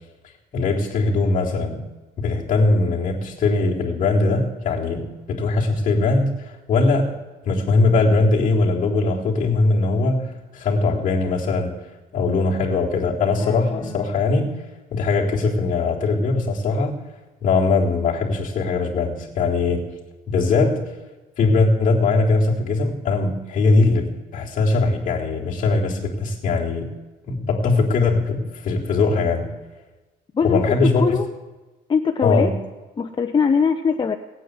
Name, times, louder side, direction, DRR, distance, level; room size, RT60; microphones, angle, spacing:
voice 1, 0.5-1.8 2.2-7.1 7.5-11.7 12.1-14.5 14.9-17.0 17.4-19.9 20.3-20.8 21.4-26.9 27.3-29.5 30.4-31.2 32.2-32.6, left 3 dB, 50° left, -2 dB, 3.5 m, -20 dB
voice 2, 13.1-14.1 14.4-14.5 30.3-30.7 31.0-31.3 31.9-32.5 33.0-34.1, left 6 dB, 30° left, 5 dB, 0.9 m, -22 dB
18.5 x 9.2 x 8.2 m, 1.2 s
cardioid pair, 110°, 17 cm